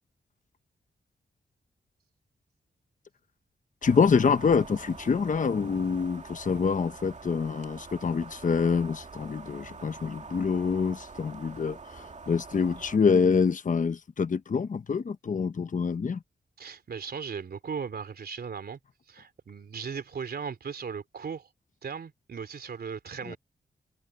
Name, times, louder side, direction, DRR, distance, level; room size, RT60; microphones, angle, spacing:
voice 1, 3.8-16.2 23.3-23.4, left 5 dB, 50° left, 1.0 m, -26 dB
sound 1, 3.8-13.0, right 4 dB, 45° right, 2.3 m, -45 dB
voice 2, 16.6-18.8 19.1-21.5 21.8-23.4, right 6 dB, 70° right, 3.4 m, -37 dB
cardioid pair, 75°, 17 cm